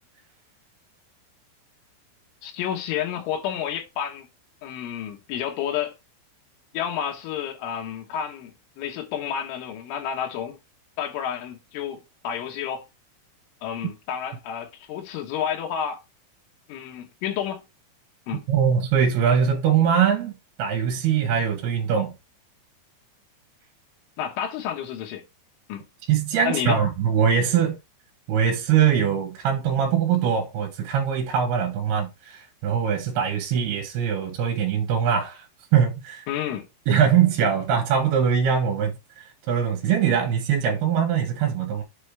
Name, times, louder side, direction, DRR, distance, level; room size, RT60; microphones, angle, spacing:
voice 1, 2.4-4.3 4.6-6.0 6.7-10.6 11.0-12.9 13.6-16.0 16.7-17.6 18.3-18.5 24.2-25.2 25.7-25.9 26.5-26.8 36.3-36.7, left 9 dB, 85° left, 3.9 m, -30 dB
voice 2, 18.5-20.3 20.6-22.1 26.1-27.8 28.3-35.4 35.7-36.2 36.9-41.8, right 8 dB, 65° right, 3.1 m, -22 dB
8.1 x 4.4 x 3.4 m
omnidirectional pair, 5.5 m